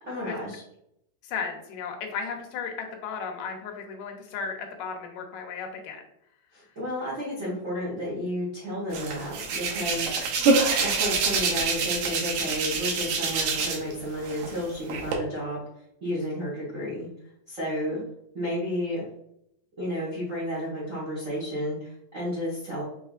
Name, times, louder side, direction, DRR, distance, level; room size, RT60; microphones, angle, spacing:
voice 1, 0.0-0.6 6.5-10.2 10.8-15.6 16.0-17.1 17.5-18.0 18.3-19.0 19.8-22.8, equal, 60° right, -7 dB, 0.8 m, -32 dB
voice 2, 1.2-6.0, left 5 dB, 85° left, 3 dB, 2.4 m, -35 dB
Hands, 8.9-13.9 14.2-15.1, right 4 dB, 80° right, 2.3 m, -26 dB
5.7 x 3.5 x 2.4 m, 0.76 s
omnidirectional pair, 3.8 m